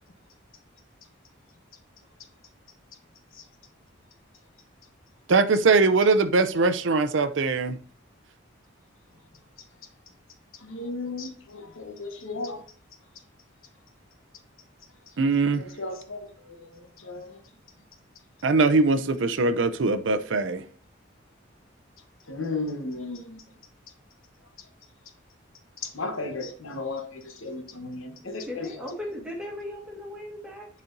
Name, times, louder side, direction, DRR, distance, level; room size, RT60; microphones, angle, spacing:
voice 1, 5.3-7.8 15.2-15.6 18.4-20.6, right 3 dB, 65° right, 0.5 m, -21 dB
voice 2, 10.6-12.6 15.5-17.4 22.3-23.4 25.8-28.9, left 3 dB, 85° left, 1.1 m, -35 dB
voice 3, 28.5-30.7, left 1 dB, 5° right, 1.7 m, -37 dB
10.0 x 4.3 x 2.6 m
head